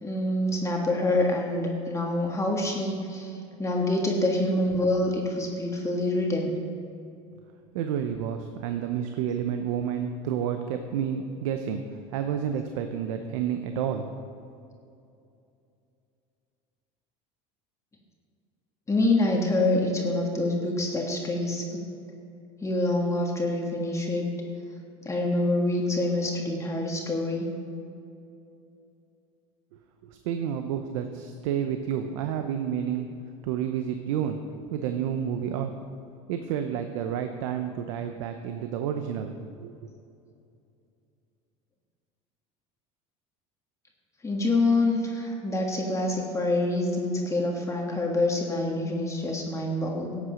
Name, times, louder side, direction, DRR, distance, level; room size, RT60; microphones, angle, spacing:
voice 1, 0.0-6.5 18.9-21.8 22.6-24.3 25.0-27.5 44.2-50.2, left 2 dB, 20° left, 0 dB, 1.6 m, -26 dB
voice 2, 7.7-11.8 12.1-14.1 30.0-33.1 33.4-34.4 34.7-35.7 36.3-39.7, right 8 dB, 85° right, 6 dB, 0.7 m, -30 dB
12.0 x 8.2 x 5.1 m, 2.6 s
supercardioid pair, 100°, 16 cm